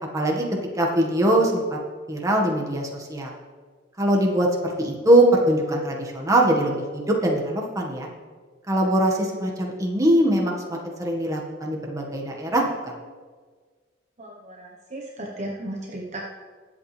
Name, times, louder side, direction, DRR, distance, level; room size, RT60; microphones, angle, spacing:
voice 1, 0.1-0.4 0.8-1.8 2.1-3.3 4.0-8.1 8.7-12.6, right 1 dB, 15° right, -1 dB, 1.7 m, -22 dB
voice 2, 14.2-16.2, right 1 dB, 40° right, -1 dB, 1.2 m, -35 dB
21.0 x 8.1 x 3.4 m, 1.5 s
head